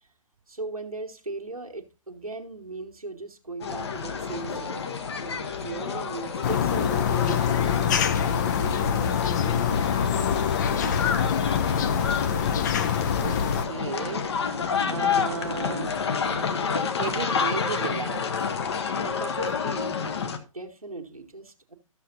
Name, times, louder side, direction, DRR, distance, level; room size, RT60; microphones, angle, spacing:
voice 1, 0.5-5.0 5.3-7.9 8.3-10.0 10.5-10.9 19.0-19.9 20.5-21.7, right 3 dB, 85° right, 1.3 m, -38 dB
sound 1, 3.6-20.4, left 6 dB, 50° left, 1.0 m, -29 dB
sound 2, 6.4-13.7, left 8 dB, 30° left, 0.5 m, -25 dB
voice 2, 11.7-12.2 13.2-14.3 14.9-16.0 17.0-18.3, right 6 dB, 50° right, 0.5 m, -34 dB
13.0 x 6.6 x 2.7 m
figure-of-eight pair, 130°, 18 cm